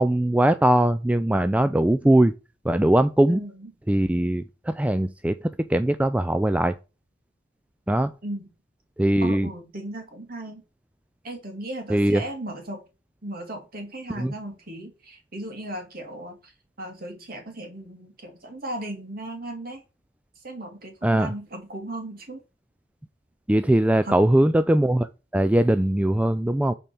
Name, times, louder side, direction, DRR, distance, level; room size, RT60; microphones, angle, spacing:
voice 1, 0.0-2.3 2.6-3.4 3.9-5.4 5.7-6.7 7.9-8.1 9.0-9.5 11.9-12.2 14.1-14.3 21.0-21.3 23.5-26.7, right 1 dB, 5° right, 0.3 m, -21 dB
voice 2, 9.2-10.6 11.2-12.8 13.2-16.3 16.8-19.8 20.4-22.4 24.1-24.2, right 1 dB, 50° right, 2.6 m, -36 dB
7.3 x 4.4 x 6.9 m
head